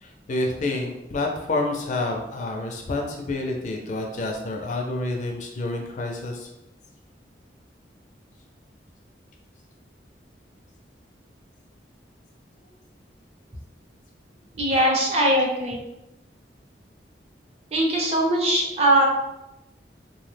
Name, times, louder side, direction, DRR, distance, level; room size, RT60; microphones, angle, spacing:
voice 1, 0.0-6.5, left 2 dB, 45° left, 1 dB, 0.4 m, -28 dB
voice 2, 14.6-15.8 17.7-19.0, right 1 dB, 35° right, -1 dB, 0.5 m, -21 dB
2.6 x 2.0 x 3.1 m, 0.93 s
head